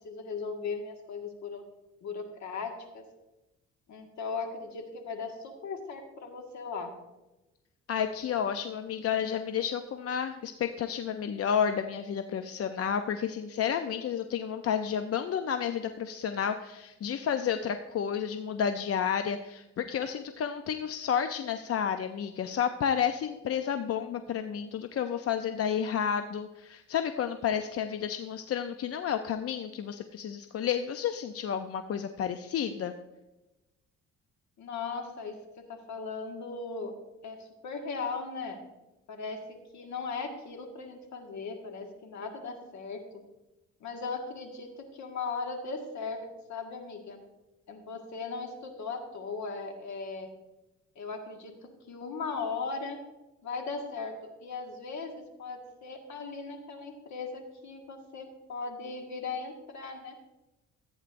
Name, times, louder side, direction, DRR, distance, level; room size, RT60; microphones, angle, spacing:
voice 1, 0.0-1.6 2.0-3.0 3.9-6.9 34.6-36.9 37.2-38.6 39.1-43.2 43.8-46.2 46.5-47.2 47.7-50.3 51.0-53.0 53.4-60.2, left 4 dB, 70° left, 3 dB, 1.8 m, -38 dB
voice 2, 7.9-32.9, left 8 dB, 50° left, 8 dB, 0.6 m, -31 dB
14.5 x 8.8 x 2.6 m, 1.0 s
cardioid pair, 90°, 30 cm